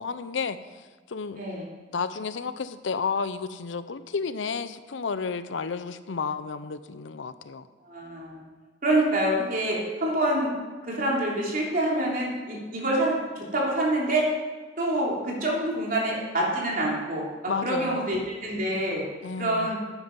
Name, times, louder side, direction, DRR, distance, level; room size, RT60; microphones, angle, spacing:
voice 1, 0.0-1.4 1.9-7.7 17.5-18.1 19.2-19.8, left 5 dB, 85° left, 13 dB, 0.6 m, -32 dB
voice 2, 7.9-8.4 8.8-10.5 10.8-14.2 14.8-17.2 17.6-19.0 19.4-19.8, right 1 dB, 50° right, -3 dB, 3.2 m, -26 dB
11.0 x 9.0 x 5.3 m, 1.3 s
head